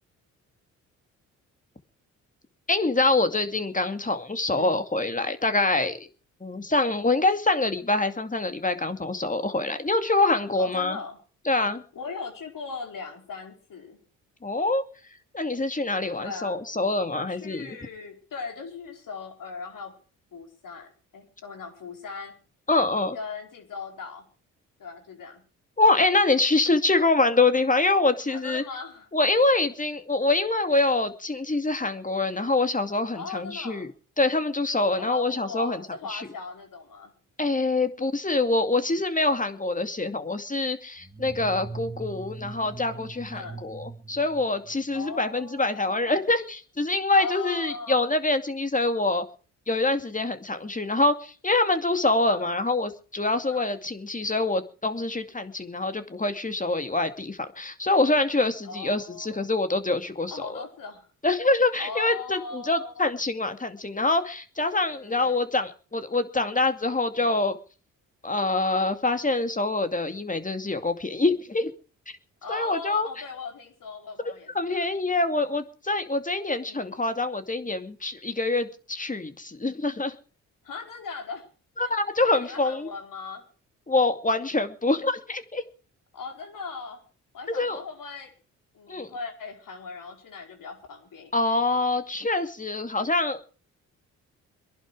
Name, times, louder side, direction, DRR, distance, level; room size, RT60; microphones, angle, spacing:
voice 1, 2.7-6.1 6.4-11.0 11.5-11.8 14.4-14.8 15.3-17.8 22.7-23.2 25.8-28.6 29.1-33.9 34.2-35.8 36.1-36.3 37.4-49.2 49.7-60.6 61.2-67.6 68.2-71.7 72.5-73.1 74.5-80.2 81.8-82.9 83.9-85.6 87.5-87.8 88.9-89.1 91.3-93.5, left 2 dB, 20° left, 9 dB, 2.4 m, -25 dB
voice 2, 10.6-11.2 11.9-14.0 16.2-16.6 17.1-20.0 20.3-22.3 23.1-24.3 24.8-25.4 28.3-29.1 33.1-33.9 34.9-37.1 43.3-43.6 44.9-46.2 47.1-48.1 52.3-52.5 53.5-53.7 58.6-59.5 60.3-61.1 61.8-63.1 64.9-65.4 67.2-67.4 72.4-74.9 76.7-77.0 80.6-81.4 81.8-82.0 82.2-83.4 86.1-87.0 87.3-88.3 88.7-91.3, left 4 dB, 60° left, 4 dB, 4.8 m, -39 dB
sound 1, 41.0-45.1, right 4 dB, 10° right, 2.7 m, -41 dB
23.5 x 11.0 x 4.9 m, 0.38 s
hypercardioid pair, 50°, 37 cm